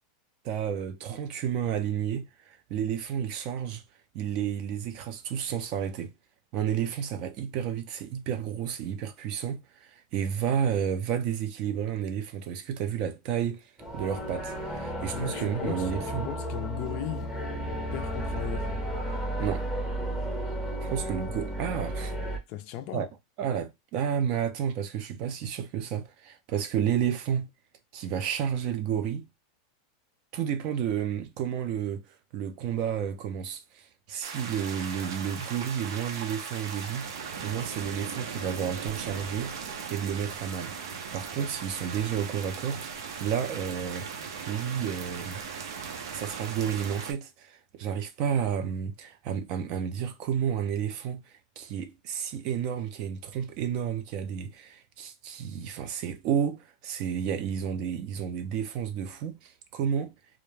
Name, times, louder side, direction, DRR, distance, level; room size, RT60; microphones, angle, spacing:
voice 1, 0.4-3.8 4.1-6.1 6.5-13.7 13.9-16.3 19.4-19.6 20.8-22.1 22.9-23.1 23.4-27.5 27.9-29.3 30.3-32.0 32.3-44.1 44.5-45.4 46.1-51.2 51.6-60.1, right 8 dB, 40° right, 0.4 m, -31 dB
sound 1, 13.8-22.4, right 1 dB, ahead, 0.7 m, -33 dB
voice 2, 15.1-17.3 17.9-18.8 22.5-23.1, left 13 dB, 45° left, 0.4 m, -37 dB
sound 2, 34.2-47.1, right 6 dB, 85° right, 0.6 m, -38 dB
2.3 x 2.1 x 3.1 m
supercardioid pair, 155°, 2 cm